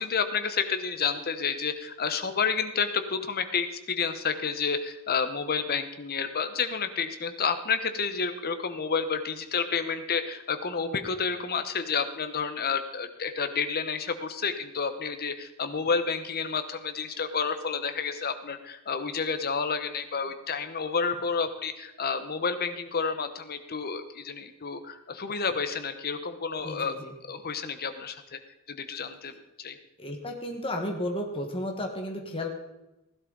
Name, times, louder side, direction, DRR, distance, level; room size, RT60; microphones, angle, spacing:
voice 1, 0.0-26.9 27.2-28.4 28.7-29.3 29.6-29.8, left 5 dB, 45° left, 9 dB, 1.0 m, -30 dB
voice 2, 26.6-27.1 29.3-29.4 30.0-32.5, left 1 dB, 25° left, 2 dB, 1.5 m, -33 dB
16.0 x 11.5 x 4.0 m, 0.95 s
head